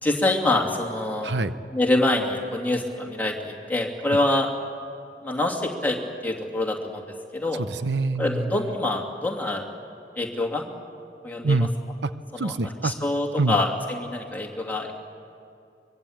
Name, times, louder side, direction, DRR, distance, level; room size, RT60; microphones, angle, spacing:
voice 1, 0.0-1.3 1.7-4.5 5.2-7.0 7.3-7.6 8.2-9.7 10.1-10.7 11.2-11.7 12.3-14.9, left 2 dB, 10° left, 1 dB, 2.5 m, -25 dB
voice 2, 7.6-8.5 11.4-11.7 12.0-12.1 12.4-12.9 13.4-13.6, right 3 dB, 80° right, 12 dB, 0.8 m, -25 dB
23.5 x 22.5 x 8.7 m, 2.4 s
head